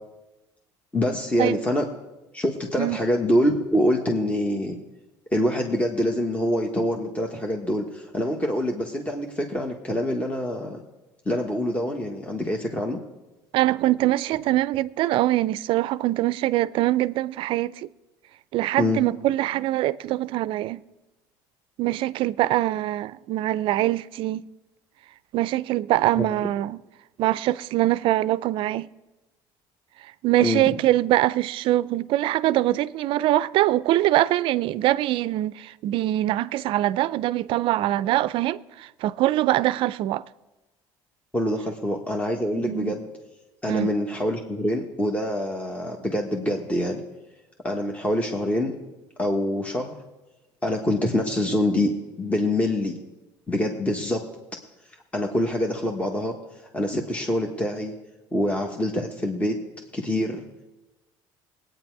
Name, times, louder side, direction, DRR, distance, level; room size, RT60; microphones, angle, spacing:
voice 1, 0.9-1.8 2.3-4.8 5.3-10.8 11.2-13.0 18.8-19.0 26.2-26.3 30.4-30.6 41.3-43.1 43.6-47.0 47.6-48.8 49.2-49.9 50.6-51.9 52.2-52.9 53.5-54.2 55.1-56.3 56.7-57.9 58.3-59.6 59.9-60.4, left 1 dB, 15° left, 1.4 m, -25 dB
voice 2, 13.5-17.9 18.5-20.8 21.8-24.4 25.3-26.8 27.2-28.9 30.2-40.2 42.6-42.9 43.7-43.9, right 15 dB, 65° right, 0.4 m, -23 dB
19.0 x 9.2 x 4.7 m
supercardioid pair, 90°, 10 cm